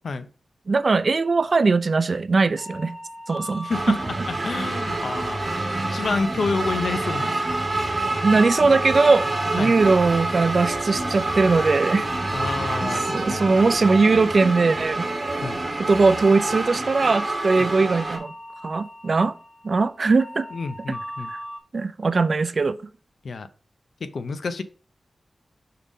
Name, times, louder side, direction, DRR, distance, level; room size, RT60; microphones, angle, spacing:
voice 1, 0.7-3.0 3.3-3.9 8.2-9.3 9.5-12.1 13.1-15.1 15.8-18.3 18.6-19.3 19.6-20.5 21.3-21.4 21.7-22.8, right 4 dB, 50° right, 0.4 m, -20 dB
sound 1, 2.6-21.6, equal, 20° left, 1.4 m, -39 dB
voice 2, 3.6-4.0 4.3-7.5 9.6-9.8 12.3-13.5 15.4-15.6 17.6-17.7 20.5-21.3 23.2-23.5 24.0-24.6, left 4 dB, 75° left, 0.5 m, -29 dB
sound 2, 3.7-18.2, right 2 dB, 35° right, 1.3 m, -27 dB
5.6 x 3.6 x 4.9 m
wide cardioid pair, 125°, 0 cm